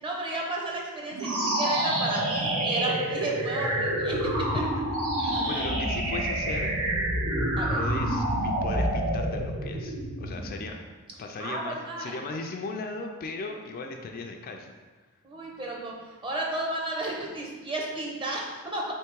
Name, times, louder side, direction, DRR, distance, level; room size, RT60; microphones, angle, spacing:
voice 1, 0.0-4.2 4.5-4.6 5.3-5.7 7.6-7.8 11.4-12.1 15.2-18.9, right 2 dB, 25° right, -2 dB, 0.7 m, -33 dB
sound 1, 1.1-10.6, right 1 dB, 75° right, 0.9 m, -28 dB
voice 2, 5.2-6.7 7.8-10.8 11.2-14.7, left 3 dB, 40° left, 3 dB, 0.3 m, -37 dB
3.5 x 3.1 x 4.5 m, 1.3 s
head